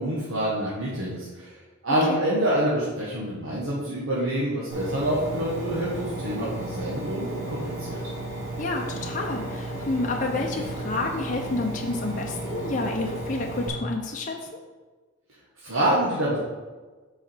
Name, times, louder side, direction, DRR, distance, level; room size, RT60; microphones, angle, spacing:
voice 1, 0.0-1.6 1.8-8.0 15.6-16.4, right 1 dB, 80° right, -7 dB, 1.4 m, -26 dB
Engine, 4.7-13.7, right 1 dB, 60° right, 2.4 m, -34 dB
voice 2, 8.6-14.6, left 2 dB, 40° left, 0 dB, 0.7 m, -29 dB
7.7 x 4.9 x 4.5 m, 1.3 s
head